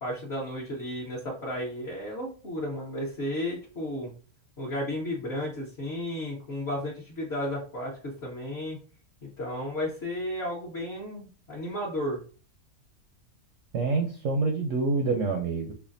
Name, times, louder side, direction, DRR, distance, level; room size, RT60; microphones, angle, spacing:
voice 1, 0.0-4.1 4.6-8.8 9.2-12.2, left 1 dB, 45° left, -4 dB, 1.1 m, -33 dB
voice 2, 13.7-15.7, right 3 dB, 70° right, 3 dB, 0.8 m, -27 dB
5.6 x 2.2 x 2.6 m, 0.39 s
omnidirectional pair, 1.7 m